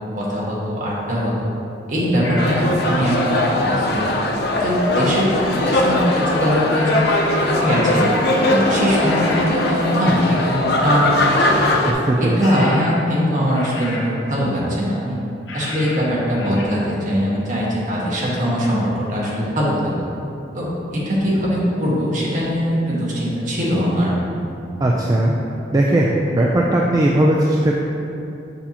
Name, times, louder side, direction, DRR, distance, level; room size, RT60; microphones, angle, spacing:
voice 1, 0.0-1.5 1.9-4.1 4.6-7.0 7.4-8.1 8.5-11.7 12.2-15.2 15.5-19.9 20.5-24.2, equal, 40° right, -6 dB, 1.4 m, -21 dB
sound 1, 2.2-2.6 6.7-8.4 8.9-9.5 12.4-13.1 13.5-14.2 15.5-16.1 16.4-16.6, left 1 dB, 85° left, 1.0 m, -32 dB
sound 2, 2.4-11.9, left 1 dB, 55° left, 0.6 m, -20 dB
voice 2, 11.8-12.4 24.8-25.3 25.7-27.7, right 1 dB, 20° right, -2 dB, 0.3 m, -17 dB
6.9 x 5.5 x 2.9 m, 2.8 s
head